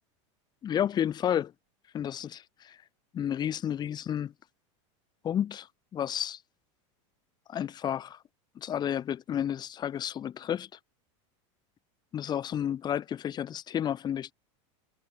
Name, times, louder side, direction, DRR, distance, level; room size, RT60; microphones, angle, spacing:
voice 1, 0.6-1.5 1.9-2.8 3.1-4.3 5.2-5.7 5.9-6.4 7.5-8.2 8.5-10.8 12.1-14.3, left 9 dB, 25° left, 1.2 m, -31 dB
supercardioid pair, 135°, 16 cm